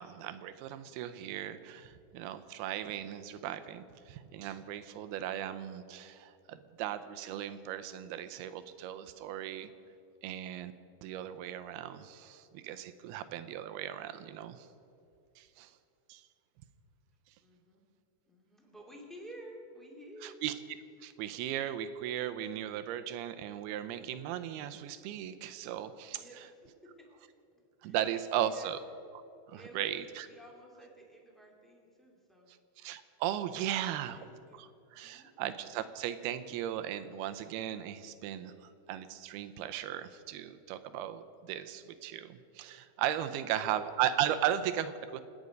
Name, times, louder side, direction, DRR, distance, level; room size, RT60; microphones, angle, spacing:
voice 1, 0.0-9.7 10.2-10.7 11.0-14.7 15.4-15.7 16.1-16.2 20.2-20.5 21.0-26.2 27.8-28.8 29.5-30.3 32.8-34.2 34.5-45.2, right 11 dB, 85° right, 10 dB, 2.7 m, -37 dB
voice 2, 17.4-17.8 18.2-20.4 26.1-27.1 27.5-28.0 28.3-28.7 29.5-32.5 33.5-33.6 33.9-35.3, right 1 dB, ahead, -2 dB, 1.7 m, -53 dB
27.5 x 9.6 x 5.2 m, 2.7 s
omnidirectional pair, 4.5 m